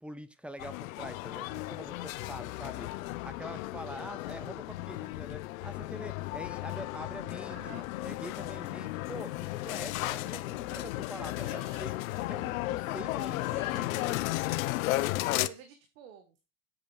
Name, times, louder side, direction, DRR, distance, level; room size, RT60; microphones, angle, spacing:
voice 1, 0.0-11.9 12.3-14.2, equal, 5° right, 13 dB, 0.8 m, -45 dB
sound 1, 0.6-15.5, left 18 dB, 80° left, 0.8 m, -34 dB
voice 2, 7.5-7.9 11.3-11.8 13.4-14.3 15.2-16.5, right 8 dB, 75° right, 7 dB, 1.8 m, -51 dB
8.3 x 6.8 x 4.9 m, 0.30 s
supercardioid pair, 130°, 40 cm